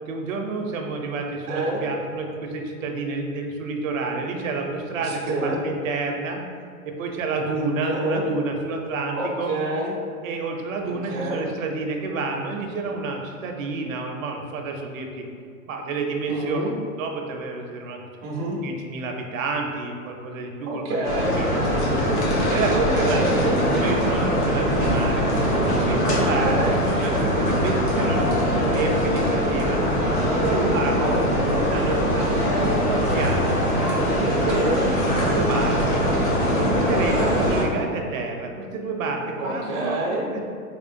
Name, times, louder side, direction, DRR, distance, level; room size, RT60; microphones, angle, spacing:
voice 1, 0.1-6.4 6.8-9.5 10.2-15.2 15.7-16.6 17.0-18.0 18.6-21.6 22.5-25.2 25.7-29.9 30.3-34.6 35.1-36.0 36.6-40.0 40.3-40.4, right 3 dB, 60° right, 2 dB, 0.6 m, -29 dB
voice 2, 1.5-1.8 5.0-5.6 7.8-8.2 9.1-9.9 10.8-11.5 16.3-16.7 18.2-18.6 20.7-21.4 22.6-23.3 26.4-26.8 30.5-31.2 34.5-34.9 37.1-37.4 39.4-40.3, right 2 dB, 20° right, -4 dB, 0.4 m, -27 dB
sound 1, 21.0-37.6, equal, 85° left, 1.2 m, -22 dB
3.6 x 3.3 x 2.5 m, 2.2 s
hypercardioid pair, 125°, 45 cm